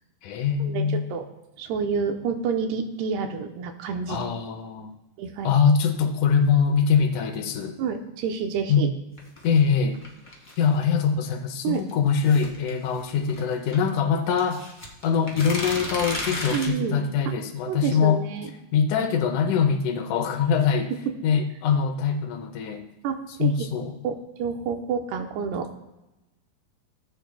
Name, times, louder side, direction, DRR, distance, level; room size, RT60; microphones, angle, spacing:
voice 1, 0.2-1.1 4.1-4.9 5.4-7.8 8.7-8.9 9.4-10.0 10.6-14.7 15.0-18.2 18.7-20.9 21.2-22.9 23.4-24.0, left 6 dB, 80° left, 5 dB, 1.8 m, -23 dB
voice 2, 1.6-4.3 5.2-5.5 7.8-8.9 11.6-11.8 16.5-17.0 17.7-18.5 23.0-23.5 24.0-25.7, right 6 dB, 90° right, 5 dB, 2.9 m, -28 dB
sound 1, 9.2-10.8 11.7-13.8 14.3-16.7, left 1 dB, 30° left, 0.5 m, -34 dB
18.0 x 9.0 x 2.3 m, 0.99 s
omnidirectional pair, 4.6 m